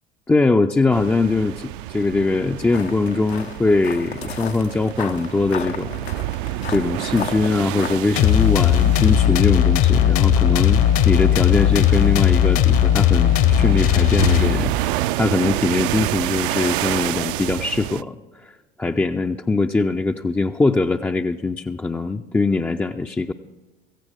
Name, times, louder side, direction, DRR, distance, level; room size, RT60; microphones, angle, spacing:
voice 1, 0.3-6.0 6.7-14.7 15.2-18.1 18.4-18.5 18.8-23.3, left 3 dB, 5° left, 4 dB, 0.3 m, -21 dB
sound 1, 0.9-18.0, right 15 dB, 60° right, 0.4 m, -29 dB
sound 2, 2.7-8.0, left 8 dB, 85° left, 0.7 m, -34 dB
sound 3, 8.2-14.9, left 10 dB, 45° left, 0.8 m, -17 dB
16.5 x 15.0 x 3.3 m, 1.1 s
figure-of-eight pair, 70°, 31 cm